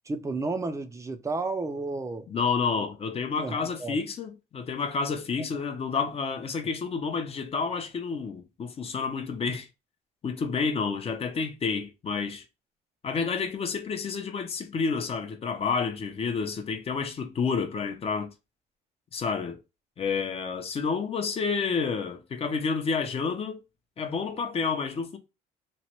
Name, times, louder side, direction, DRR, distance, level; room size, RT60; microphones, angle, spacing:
voice 1, 0.1-2.3 2.8-2.9 3.4-4.0, right 3 dB, 20° right, 0.4 m, -32 dB
voice 2, 2.3-9.7 10.2-12.4 13.0-18.3 19.1-19.6 20.0-23.6 24.0-25.2, left 5 dB, 35° left, 0.6 m, -29 dB
3.1 x 2.2 x 2.9 m
cardioid pair, 110°, 17 cm